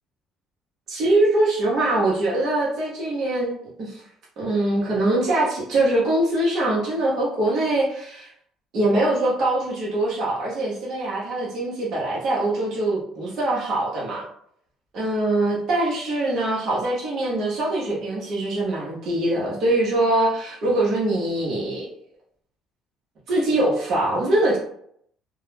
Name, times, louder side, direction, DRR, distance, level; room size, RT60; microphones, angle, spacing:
voice 1, 0.9-3.5 3.8-4.0 4.4-8.3 8.7-14.2 14.9-21.9 23.3-24.6, right 2 dB, 55° right, -5 dB, 0.7 m, -23 dB
2.2 x 2.0 x 3.2 m, 0.68 s
cardioid pair, 105°, 0 cm